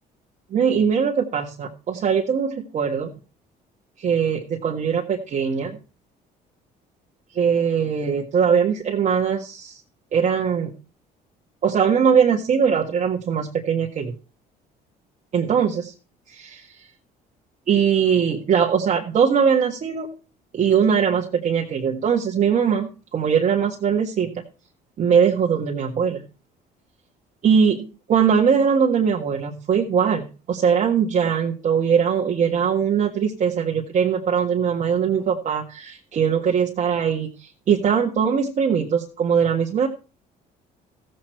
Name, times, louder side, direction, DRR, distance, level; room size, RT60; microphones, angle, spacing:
voice 1, 0.5-3.1 4.0-5.7 7.3-9.8 10.1-10.7 11.6-14.1 15.3-15.9 16.3-16.7 17.7-20.1 20.5-24.4 25.0-26.2 27.4-39.9, right 7 dB, 50° right, -1 dB, 1.7 m, -21 dB
14.5 x 7.9 x 4.5 m, 0.35 s
cardioid pair, 110°, 17 cm